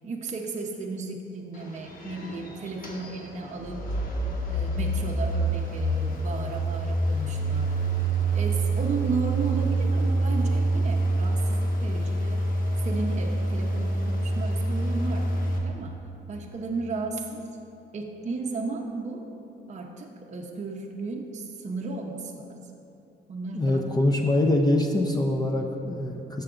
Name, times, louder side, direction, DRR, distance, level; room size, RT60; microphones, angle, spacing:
voice 1, 0.0-3.8 4.5-7.8 8.3-12.4 12.8-15.3 15.6-16.0 16.3-17.5 17.9-19.3 19.7-22.6 23.3-23.9, right 3 dB, 35° right, 0 dB, 0.6 m, -34 dB
sound 1, 1.5-15.6, right 2 dB, 45° left, 1.1 m, -27 dB
voice 2, 23.5-26.4, left 1 dB, 20° left, 2 dB, 0.5 m, -24 dB
6.8 x 6.6 x 3.7 m, 2.9 s
cardioid pair, 90°, 20 cm